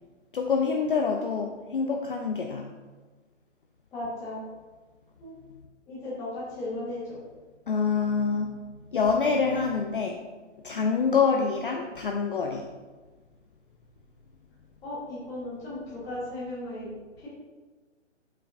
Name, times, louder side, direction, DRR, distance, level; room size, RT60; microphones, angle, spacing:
voice 1, 0.3-2.7 7.7-8.5 8.9-10.2 10.6-12.6, left 5 dB, 45° left, 2 dB, 0.5 m, -26 dB
voice 2, 3.9-4.4 5.2-5.3 5.9-7.2 14.8-16.9 17.2-17.3, left 1 dB, 10° left, -9 dB, 1.3 m, -36 dB
7.4 x 5.2 x 2.5 m, 1.3 s
hypercardioid pair, 170°, 37 cm